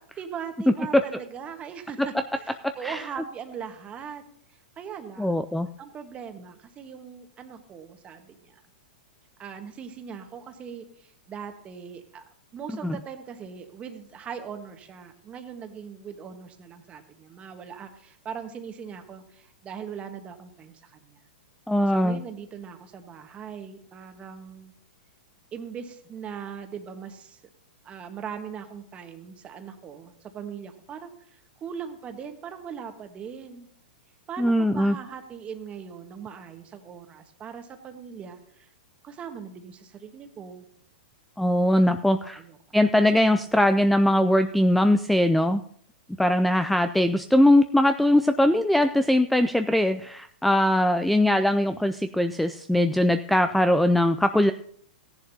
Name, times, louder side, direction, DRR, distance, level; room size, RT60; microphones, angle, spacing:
voice 1, 0.2-4.2 4.5-5.5 5.8-8.6 9.4-12.2 12.5-21.2 21.9-24.7 25.5-27.4 27.8-33.7 34.3-38.7 39.0-40.7 41.9-42.9, right 7 dB, 25° right, 7 dB, 1.4 m, -40 dB
voice 2, 5.2-5.7 12.8-13.0 21.7-22.2 34.4-35.0 41.4-42.4 42.7-45.6 46.2-54.5, left 1 dB, ahead, 9 dB, 0.3 m, -21 dB
15.0 x 10.5 x 2.8 m, 0.63 s
hypercardioid pair, 120°, 5 cm